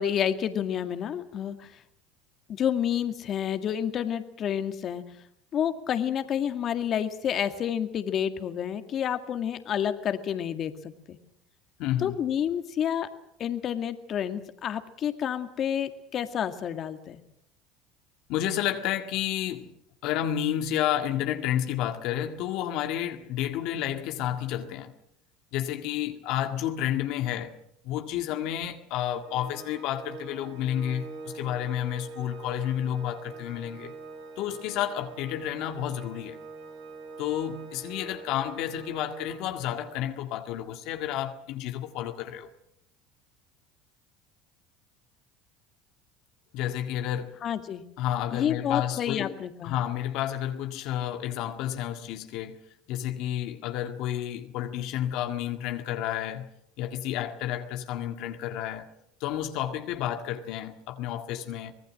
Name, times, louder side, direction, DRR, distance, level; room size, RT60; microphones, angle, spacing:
voice 1, 0.0-1.8 2.5-5.0 5.5-11.2 12.0-13.1 13.4-17.2 47.4-47.8 48.3-49.8, left 9 dB, 50° left, 2.0 m, -29 dB
voice 2, 11.8-12.2 18.3-19.7 20.0-24.9 25.5-27.5 27.8-33.9 34.4-36.4 37.2-42.5 46.5-47.4 48.0-49.3 49.6-52.6 52.9-56.5 56.8-58.9 59.2-61.7, left 11 dB, 65° left, 1.9 m, -31 dB
Organ, 29.2-40.0, right 4 dB, 80° right, 7.5 m, -44 dB
25.0 x 19.0 x 7.6 m
hypercardioid pair, 85°, 0 cm